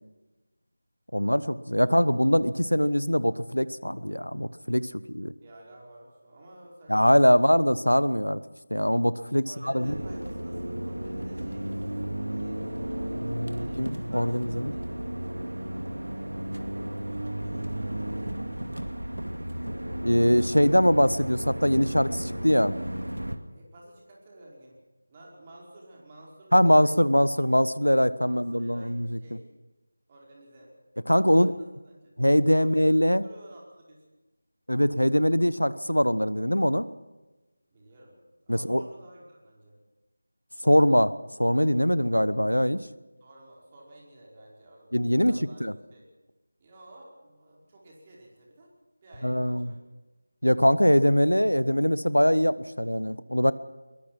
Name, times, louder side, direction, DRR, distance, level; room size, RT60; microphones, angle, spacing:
voice 1, 1.1-5.3 6.9-8.4 8.7-9.5 9.7-9.9 13.8-14.7 20.0-22.7 26.5-29.2 31.1-31.5 32.2-33.2 34.7-36.9 38.5-38.8 40.6-42.8 44.9-45.3 45.6-45.7 49.2-49.7 50.4-53.5, equal, 85° left, 16 dB, 1.2 m, -22 dB
voice 2, 5.4-7.5 9.3-11.8 12.3-12.8 13.5-15.0 17.0-18.4 23.5-24.8 25.1-27.0 28.2-29.5 30.1-30.7 31.2-32.2 32.6-32.9 33.2-34.0 37.7-39.8 43.2-45.6 45.9-46.1 46.6-48.7 49.0-49.8, right 1 dB, 20° right, -3 dB, 5.0 m, -51 dB
sound 1, 9.8-23.4, right 1 dB, 75° right, 2.3 m, -33 dB
22.5 x 21.5 x 6.0 m, 1.1 s
figure-of-eight pair, 165°, 0 cm